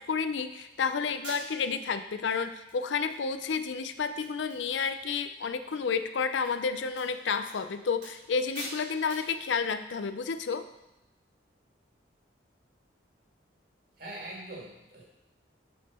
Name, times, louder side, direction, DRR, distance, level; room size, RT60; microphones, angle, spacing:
voice 1, 0.0-10.6, left 5 dB, 75° left, 10 dB, 0.5 m, -31 dB
sound 1, 0.7-0.8 1.2-1.8 2.3-2.4 2.7-3.2 3.5-3.6 3.9-4.0 4.2-5.2 5.5-5.8 6.4-6.6 6.9-7.1 7.5-7.6 8.0-8.3 8.5-8.8 9.1-9.3, right 2 dB, 70° right, 3.2 m, -45 dB
voice 2, 14.0-15.0, right 1 dB, 50° right, -3 dB, 2.2 m, -42 dB
7.9 x 5.4 x 4.3 m, 0.90 s
head